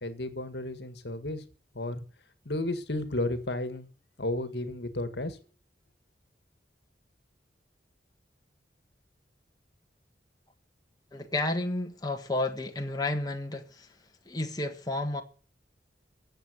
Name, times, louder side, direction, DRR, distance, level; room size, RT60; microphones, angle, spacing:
voice 1, 0.0-1.4 1.7-2.0 2.5-3.9 4.2-5.4, left 1 dB, 65° left, 1.8 m, -33 dB
voice 2, 11.1-13.9 14.3-15.2, left 2 dB, 20° left, 1.5 m, -31 dB
15.5 x 7.5 x 8.0 m
head